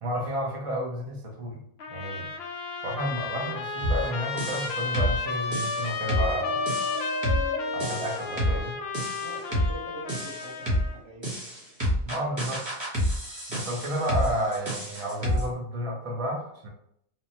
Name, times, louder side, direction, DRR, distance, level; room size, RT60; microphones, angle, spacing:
voice 1, 0.0-1.6 1.9-2.3 2.8-6.6 7.7-8.7 12.0-12.7 13.5-16.7, equal, 40° right, -1 dB, 0.5 m, -31 dB
Trumpet, 1.8-11.0, left 4 dB, 70° left, 0.6 m, -33 dB
sound 1, 3.8-4.0 4.4-5.2 5.5-8.6 8.9-9.7 10.1-10.9 11.2-15.5, equal, 20° right, 1.0 m, -29 dB
voice 2, 8.3-8.7 9.2-11.3, right 2 dB, 55° right, -3 dB, 1.1 m, -43 dB
3.1 x 2.1 x 2.7 m, 0.70 s
omnidirectional pair, 1.5 m